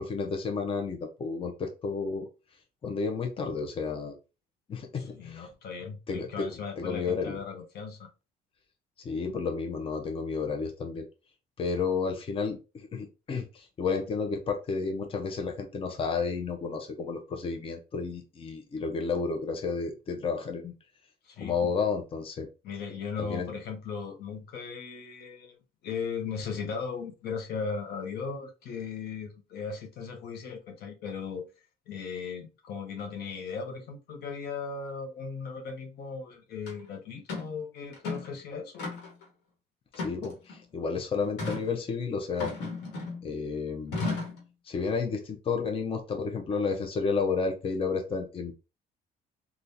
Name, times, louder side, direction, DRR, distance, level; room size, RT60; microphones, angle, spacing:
voice 1, 0.0-2.3 2.8-4.2 4.7-5.5 6.1-6.5 6.8-7.4 9.0-11.1 11.6-20.7 21.4-22.5 23.2-23.5 39.9-42.5 43.2-44.0 44.7-48.5, left 5 dB, 35° left, 0.7 m, -31 dB
voice 2, 5.0-8.1 21.2-21.7 22.6-25.6 25.8-31.4 31.9-38.9, left 5 dB, 70° left, 0.9 m, -37 dB
sound 1, 36.7-36.8 37.3-37.5 37.9-38.3 38.8-39.2 39.9-40.6 41.4-41.7 42.4-43.3 43.9-44.4, left 3 dB, 90° left, 1.4 m, -34 dB
3.5 x 2.4 x 2.7 m
cardioid pair, 110°, 17 cm